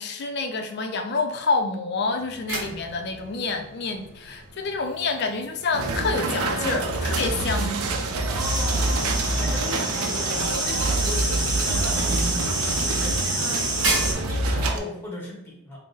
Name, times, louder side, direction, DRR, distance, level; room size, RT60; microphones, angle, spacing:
voice 1, 0.0-7.9, left 3 dB, 50° left, 5 dB, 0.4 m, -28 dB
sound 1, 2.1-15.1, right 2 dB, 55° right, 0.9 m, -37 dB
sound 2, 5.7-14.8, right 2 dB, 75° right, 0.5 m, -26 dB
voice 2, 8.3-13.4 13.8-15.8, left 1 dB, 10° left, -3 dB, 0.9 m, -37 dB
sound 3, 8.4-14.1, right 2 dB, 20° right, 0.4 m, -28 dB
3.7 x 2.0 x 3.8 m, 0.79 s
head